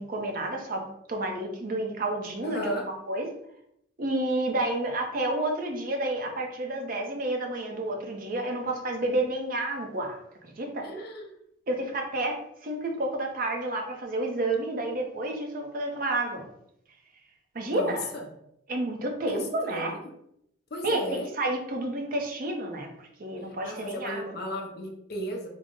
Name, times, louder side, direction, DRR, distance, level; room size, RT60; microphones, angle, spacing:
voice 1, 0.0-3.3 4.0-10.9 11.7-16.4 17.5-18.1 18.7-19.9 20.8-24.3, right 1 dB, 45° right, 3 dB, 0.6 m, -30 dB
voice 2, 2.4-2.8 10.8-11.4 17.7-18.3 19.3-20.1 20.7-21.3 23.4-25.5, left 1 dB, 55° left, 2 dB, 0.5 m, -35 dB
3.7 x 2.0 x 3.6 m, 0.76 s
head